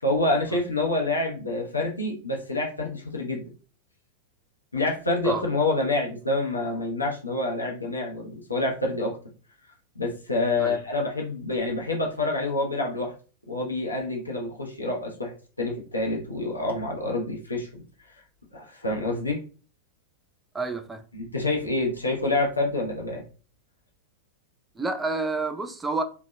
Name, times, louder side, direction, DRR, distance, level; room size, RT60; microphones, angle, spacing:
voice 1, 0.0-3.4 4.7-9.2 10.0-13.1 13.5-17.8 18.5-19.4 21.1-23.2, left 2 dB, 80° left, 0.7 m, -27 dB
voice 2, 20.5-21.0 24.8-26.0, right 3 dB, 10° right, 0.3 m, -29 dB
2.6 x 2.1 x 2.2 m
figure-of-eight pair, 95°, 0 cm